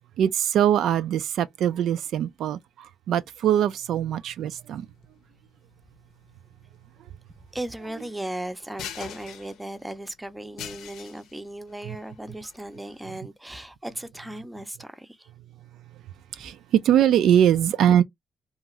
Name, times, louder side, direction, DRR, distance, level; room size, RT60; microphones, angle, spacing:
voice 1, 0.2-4.9 16.3-18.0, right 10 dB, 75° right, 0.3 m, -22 dB
sound 1, 4.3-13.2, left 9 dB, 80° left, 0.6 m, -45 dB
voice 2, 7.3-15.3, right 1 dB, 10° right, 0.5 m, -37 dB
2.5 x 2.4 x 3.0 m
cardioid pair, 90°, 0 cm